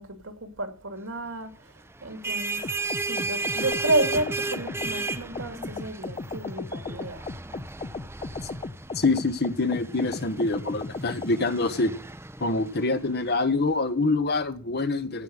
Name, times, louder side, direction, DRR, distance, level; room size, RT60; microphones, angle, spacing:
voice 1, 0.0-1.5 2.0-2.7 3.0-7.3, right 2 dB, 85° right, 2.6 m, -31 dB
sound 1, 2.0-13.3, right 3 dB, 10° right, 0.8 m, -35 dB
sound 2, 2.6-11.4, left 3 dB, 30° left, 0.5 m, -36 dB
voice 2, 8.9-11.9 12.4-15.2, left 3 dB, 55° left, 1.3 m, -25 dB
16.0 x 5.6 x 7.8 m
head